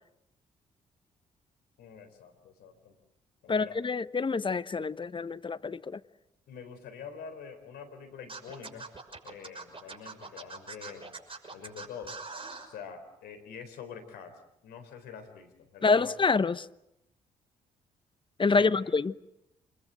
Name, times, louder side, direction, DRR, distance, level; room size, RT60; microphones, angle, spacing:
voice 1, 1.8-2.9 3.4-3.8 6.5-8.9 9.2-11.1 11.5-12.2 12.7-16.1 18.6-18.9, left 6 dB, 75° left, 4.0 m, -46 dB
voice 2, 3.5-6.0 15.8-16.7 18.4-19.1, left 4 dB, 30° left, 1.0 m, -27 dB
Scratching (performance technique), 8.3-12.7, right 3 dB, 35° right, 6.1 m, -42 dB
27.5 x 22.0 x 8.0 m
hypercardioid pair, 45°, 17 cm